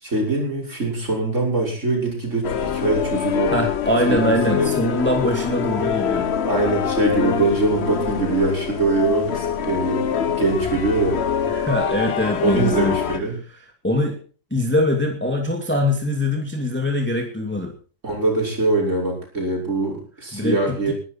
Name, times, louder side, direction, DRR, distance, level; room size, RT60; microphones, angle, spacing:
voice 1, 0.0-3.6 4.1-4.7 6.5-11.2 12.4-13.4 18.0-20.9, right 2 dB, 40° right, -1 dB, 6.4 m, -23 dB
sound 1, 2.4-13.2, left 7 dB, 50° left, 0.8 m, -24 dB
voice 2, 3.5-6.3 11.5-13.0 13.8-14.2 14.5-17.7 20.3-20.9, left 1 dB, 5° left, 2 dB, 2.7 m, -22 dB
20.5 x 12.5 x 4.6 m, 0.41 s
omnidirectional pair, 2.1 m